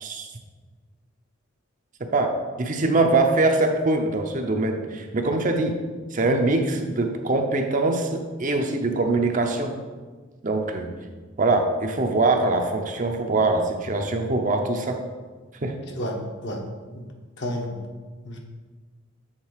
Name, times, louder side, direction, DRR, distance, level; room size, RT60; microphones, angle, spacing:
voice 1, 2.1-5.8 6.1-9.7 10.4-10.9 11.4-15.0 15.6-15.7, right 2 dB, 40° right, 4 dB, 0.6 m, -23 dB
voice 2, 17.4-17.8 18.2-18.4, equal, 60° left, 1 dB, 1.0 m, -30 dB
7.4 x 3.8 x 4.7 m, 1.4 s
head